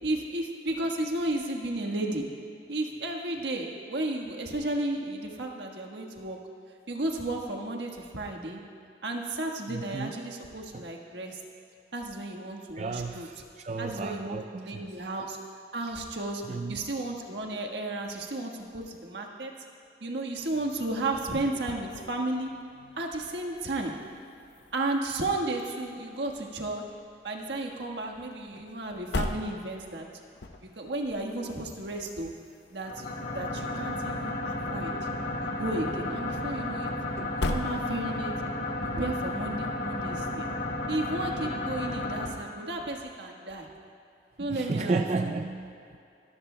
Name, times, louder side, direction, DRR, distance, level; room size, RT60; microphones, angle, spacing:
voice 1, 0.0-2.2 2.7-6.4 6.9-8.6 9.0-11.4 11.9-13.3 13.8-14.4 14.6-15.4 15.7-16.4 16.7-19.5 20.0-22.5 22.9-23.9 24.7-26.8 27.2-30.1 30.6-32.3 32.7-34.9 35.4-36.9 37.5-38.3 38.8-40.5 40.9-43.7 44.4-45.4, right 2 dB, 80° right, 1 dB, 1.5 m, -33 dB
voice 2, 9.7-10.1 10.7-10.8 12.8-15.1 16.5-16.8 37.2-37.3 44.5-46.0, right 3 dB, 40° right, 6 dB, 0.4 m, -33 dB
sound 1, 20.4-38.5, left 2 dB, 80° left, 0.8 m, -42 dB
sound 2, 32.8-42.3, left 2 dB, 60° left, 1.8 m, -33 dB
23.5 x 14.0 x 2.2 m, 2.5 s
head